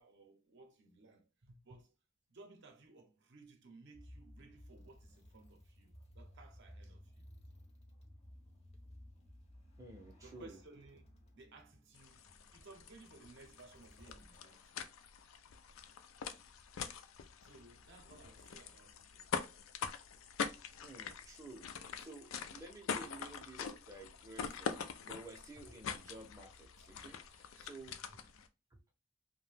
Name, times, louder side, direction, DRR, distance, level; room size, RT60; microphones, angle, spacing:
voice 1, 0.0-1.9 2.3-7.3 10.2-11.0 11.3-12.3 12.5-14.9 17.4-19.3 27.6-27.7 28.0-28.2, right 3 dB, 60° right, 0.6 m, -59 dB
sound 1, 3.9-14.6, equal, 30° left, 0.6 m, -58 dB
voice 2, 9.8-10.6 20.8-28.2 28.7-28.8, right 2 dB, 15° right, 0.5 m, -53 dB
sound 2, 11.9-28.5, left 6 dB, 80° left, 0.4 m, -45 dB
2.6 x 2.1 x 3.3 m
head